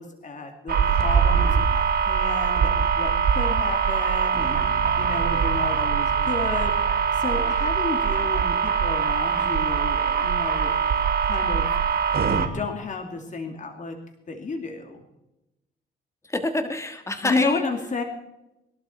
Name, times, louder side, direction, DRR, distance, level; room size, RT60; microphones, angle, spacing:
voice 1, 0.0-10.8 11.2-11.7 12.0-12.1 12.4-13.9 14.3-15.0 17.2-18.0, left 3 dB, 40° left, 4 dB, 2.4 m, -32 dB
sound 1, 0.7-12.5, right 7 dB, 50° right, 2.4 m, -22 dB
sound 2, 4.3-9.6, right 7 dB, 25° right, 7.4 m, -40 dB
voice 2, 16.2-17.6, left 2 dB, 15° left, 7 dB, 1.7 m, -27 dB
21.5 x 12.0 x 4.4 m, 0.90 s
cardioid pair, 90°, 20 cm